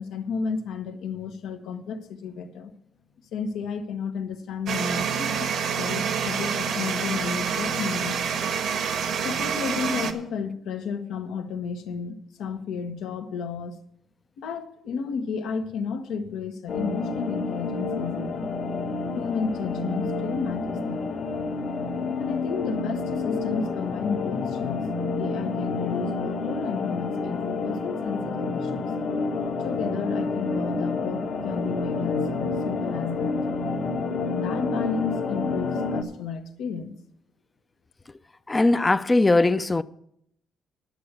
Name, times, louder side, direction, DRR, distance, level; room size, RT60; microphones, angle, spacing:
voice 1, 0.0-2.7 3.3-8.2 9.2-13.7 14.4-18.5 19.1-21.1 22.2-28.9 29.6-33.4 34.4-36.9, left 5 dB, 90° left, 1.2 m, -32 dB
sound 1, 4.7-10.1, right 6 dB, 75° right, 1.3 m, -27 dB
sound 2, 16.7-36.0, left 3 dB, 65° left, 1.4 m, -29 dB
voice 2, 38.5-39.8, left 2 dB, 20° left, 0.4 m, -20 dB
10.5 x 6.8 x 8.2 m
cardioid pair, 110°, 0 cm